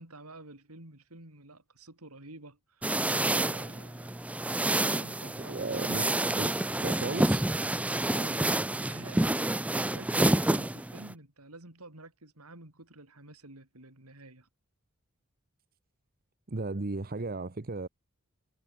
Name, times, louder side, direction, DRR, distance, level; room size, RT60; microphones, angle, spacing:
voice 1, 0.0-4.2 4.6-5.8 8.1-14.5, right 2 dB, 85° right, 4.9 m, -49 dB
sound 1, 2.8-11.1, right 1 dB, 5° right, 0.4 m, -28 dB
voice 2, 5.5-6.1 6.4-6.5 6.8-7.4 16.5-17.9, right 3 dB, 45° right, 0.9 m, -34 dB
head